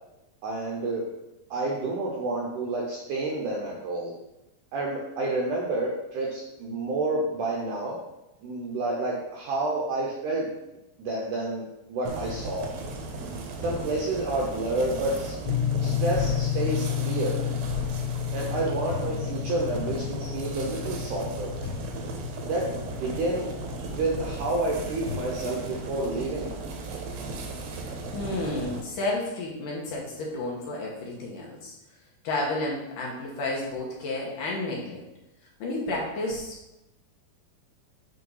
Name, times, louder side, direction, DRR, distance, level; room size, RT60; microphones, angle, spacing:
voice 1, 0.4-1.1 1.5-4.1 4.7-8.0 8.4-10.5 11.0-12.7 13.6-15.4 15.8-17.4 18.3-21.5 22.5-23.5 23.9-26.5, right 2 dB, 75° right, -2 dB, 1.9 m, -29 dB
sound 1, 12.1-28.8, right 2 dB, 90° right, 3.2 m, -36 dB
Knock, 13.6-14.3 16.2-16.8 18.9-19.7 21.6-22.4 24.7-24.8 25.0-25.8, left 4 dB, 35° right, 1.0 m, -41 dB
sound 2, 15.5-25.6, left 10 dB, 85° left, 2.7 m, -32 dB
voice 2, 22.1-22.5 28.1-31.8 32.2-35.0 35.6-36.6, left 2 dB, 70° left, -3 dB, 2.3 m, -31 dB
8.0 x 3.7 x 5.5 m, 0.94 s
omnidirectional pair, 4.7 m